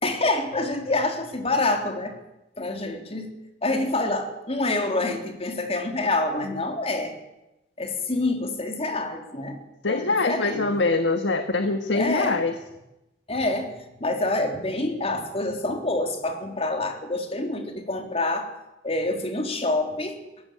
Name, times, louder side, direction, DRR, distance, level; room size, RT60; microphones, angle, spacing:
voice 1, 0.0-2.1 2.6-3.3 3.6-7.1 7.8-9.6 9.9-10.8 11.9-12.4 13.3-13.7 14.0-18.5 18.8-20.2, left 2 dB, 35° left, 4 dB, 3.4 m, -27 dB
voice 2, 9.8-12.5, left 3 dB, 80° left, 7 dB, 1.6 m, -23 dB
22.0 x 17.0 x 8.8 m, 0.95 s
head